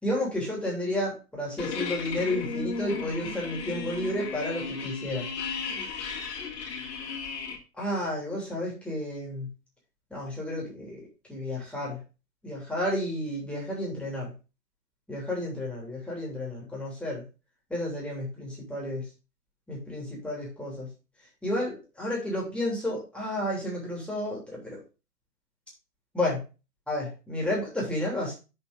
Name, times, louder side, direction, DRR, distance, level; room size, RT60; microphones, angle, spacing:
voice 1, 0.0-5.3 7.8-9.5 10.1-12.0 12.4-14.3 15.1-17.2 17.7-19.1 19.7-20.9 21.4-24.8 26.1-26.4 26.9-28.3, left 1 dB, ahead, -4 dB, 3.0 m, -31 dB
sound 1, 1.6-7.6, left 5 dB, 40° left, 2.7 m, -35 dB
7.0 x 5.3 x 5.2 m, 0.30 s
hypercardioid pair, 130°, 50 cm